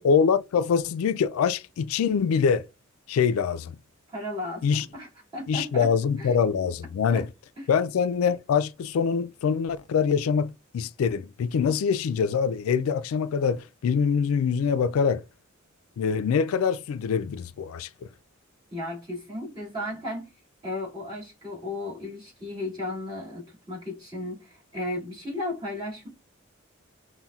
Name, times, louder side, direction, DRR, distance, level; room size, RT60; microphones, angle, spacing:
voice 1, 0.0-2.7 3.1-3.8 4.6-4.8 5.5-7.3 7.7-15.2 16.0-17.9, left 6 dB, 85° left, 0.3 m, -24 dB
voice 2, 4.1-5.9 6.2-6.3 7.1-7.3 7.6-7.7 18.7-20.3 20.6-26.1, left 1 dB, 20° right, 2.3 m, -35 dB
5.5 x 2.2 x 2.3 m
head